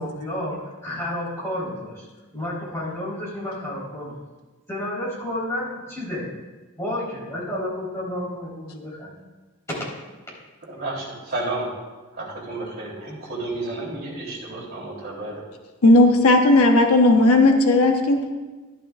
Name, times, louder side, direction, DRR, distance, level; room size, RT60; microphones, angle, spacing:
voice 1, 0.0-2.1 2.3-4.1 4.7-6.3 6.8-9.2, left 1 dB, 15° left, -7 dB, 3.9 m, -31 dB
voice 2, 10.7-11.7 12.1-15.5, right 2 dB, 45° right, -5 dB, 3.7 m, -31 dB
voice 3, 15.8-18.3, left 2 dB, 85° left, 4 dB, 1.0 m, -15 dB
13.5 x 11.5 x 2.5 m, 1.2 s
head